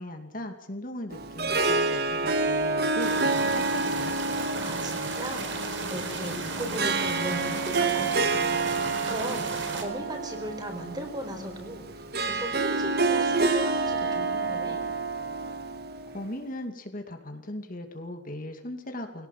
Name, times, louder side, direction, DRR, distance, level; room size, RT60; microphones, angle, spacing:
voice 1, 0.0-4.2 16.1-19.3, left 1 dB, 50° left, 5 dB, 2.7 m, -38 dB
Harp, 1.1-16.4, right 3 dB, 60° right, 1.9 m, -28 dB
sound 1, 3.0-9.8, right 3 dB, 80° right, 4.3 m, -34 dB
voice 2, 4.6-9.4 9.7-11.8 12.2-14.8, right 1 dB, 25° right, 4 dB, 4.8 m, -37 dB
22.5 x 18.0 x 7.6 m, 0.78 s
head